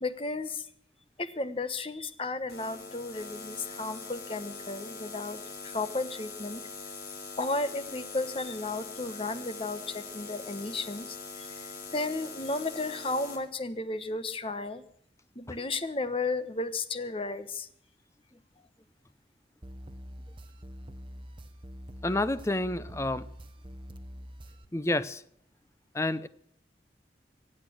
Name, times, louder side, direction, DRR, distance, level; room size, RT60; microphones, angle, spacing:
voice 1, 0.0-0.7 1.2-6.9 7.4-14.8 15.3-17.7, left 3 dB, 30° left, 1.1 m, -34 dB
sound 1, 2.5-13.4, left 4 dB, 60° left, 3.4 m, -42 dB
sound 2, 19.6-24.7, equal, 30° right, 0.9 m, -45 dB
voice 2, 22.0-23.3 24.7-25.2 25.9-26.3, left 2 dB, 15° left, 0.7 m, -29 dB
24.0 x 8.7 x 6.3 m
head